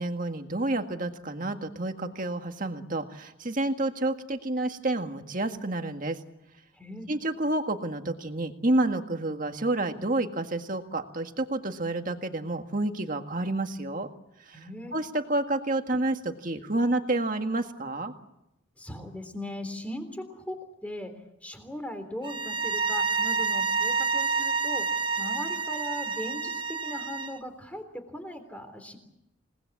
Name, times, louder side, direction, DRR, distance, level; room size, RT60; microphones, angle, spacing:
voice 1, 0.0-6.2 7.1-14.1 14.4-14.6 14.9-18.1, right 2 dB, 40° right, 6 dB, 1.8 m, -29 dB
voice 2, 6.7-7.1 14.5-15.0 18.8-20.6 20.8-21.1 21.4-24.9 25.2-29.0, left 1 dB, 5° left, 7 dB, 3.5 m, -38 dB
sound 1, 22.2-27.4, right 5 dB, 25° right, 0.8 m, -28 dB
28.5 x 19.5 x 8.5 m, 0.86 s
head